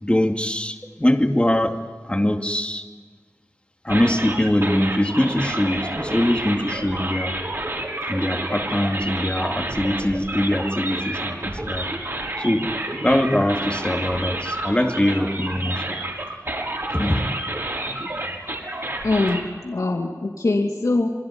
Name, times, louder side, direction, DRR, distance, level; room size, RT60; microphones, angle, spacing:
voice 1, 0.0-2.9 3.8-7.4 8.1-11.9 12.4-12.7 13.0-16.0 16.9-17.3, left 1 dB, 20° left, 3 dB, 2.4 m, -22 dB
sound 1, 3.9-19.4, right 1 dB, 50° right, 6.5 m, -29 dB
voice 2, 19.0-21.1, left 2 dB, 90° left, 1 dB, 2.6 m, -23 dB
28.0 x 21.0 x 9.8 m, 1.5 s
wide cardioid pair, 60°, 6 cm